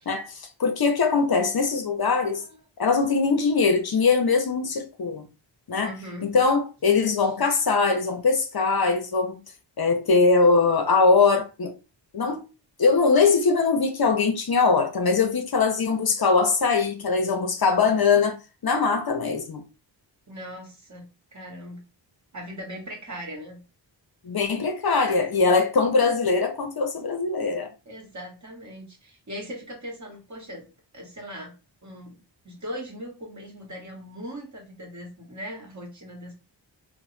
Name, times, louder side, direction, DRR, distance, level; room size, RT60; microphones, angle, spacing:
voice 1, 0.1-2.4 2.8-5.3 5.7-5.9 6.2-9.4 9.8-11.7 12.1-12.5 12.8-18.4 18.6-19.6 24.2-27.7, left 4 dB, 50° left, 0.6 m, -22 dB
voice 2, 2.2-2.6 5.8-6.3 7.2-7.3 20.3-21.1 21.3-21.8 22.3-23.6 27.9-30.7 30.9-31.5 31.8-36.3, equal, 40° right, 1.0 m, -39 dB
2.9 x 2.0 x 3.1 m
wide cardioid pair, 80°, 46 cm